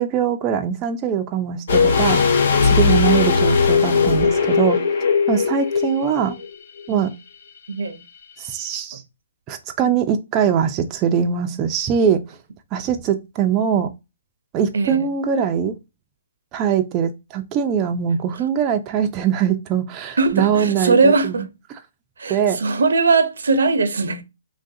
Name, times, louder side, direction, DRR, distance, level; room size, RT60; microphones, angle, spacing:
voice 1, 0.0-2.2 2.6-4.8 5.3-6.4 6.9-7.1 8.4-9.0 9.5-12.2 12.7-13.9 14.5-15.8 16.5-21.4 22.3-22.6, right 8 dB, 25° right, 0.3 m, -21 dB
sound 1, 1.7-6.5 6.8-6.9, left 5 dB, 55° left, 0.6 m, -18 dB
voice 2, 7.7-8.0 14.7-15.1 18.4-18.5 20.2-21.5 22.2-24.2, right 3 dB, 80° right, 0.5 m, -19 dB
3.1 x 2.4 x 2.6 m
hypercardioid pair, 155°, 0 cm